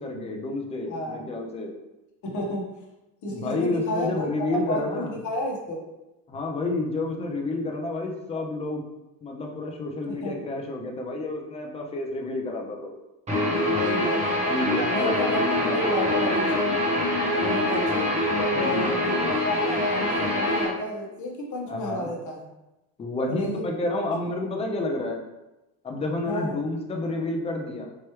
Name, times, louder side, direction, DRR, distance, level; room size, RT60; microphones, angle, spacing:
voice 1, 0.0-1.7 3.3-5.2 6.3-8.8 9.2-12.9 14.5-16.2 18.5-18.8 21.7-22.1 23.0-25.2 25.8-27.9, left 2 dB, 15° left, 1 dB, 0.4 m, -30 dB
voice 2, 0.9-1.3 2.2-2.7 3.2-5.8 10.0-10.3 13.8-14.5 14.8-16.8 17.4-18.1 18.5-22.5 23.3-23.6 26.3-26.6, equal, 45° left, -1 dB, 1.1 m, -31 dB
Guitar, 13.3-20.6, left 1 dB, 15° right, 0.8 m, -24 dB
4.7 x 3.1 x 3.0 m, 0.98 s
cardioid pair, 145°, 43 cm